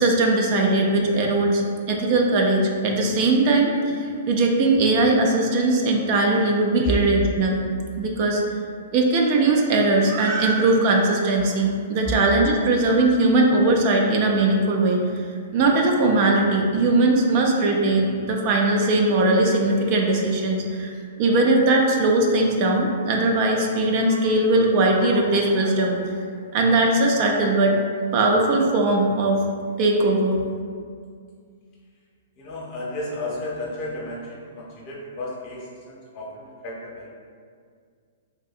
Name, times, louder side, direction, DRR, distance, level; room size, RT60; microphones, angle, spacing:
voice 1, 0.0-1.6 1.9-7.6 8.0-8.4 8.9-15.0 15.5-20.9 21.2-26.0 26.5-27.8 28.1-29.4 29.8-30.4, right 2 dB, 45° right, 1 dB, 0.4 m, -20 dB
voice 2, 32.4-37.1, equal, 40° left, -3 dB, 0.8 m, -32 dB
3.5 x 2.6 x 2.4 m, 2.1 s
figure-of-eight pair, 115°, 0 cm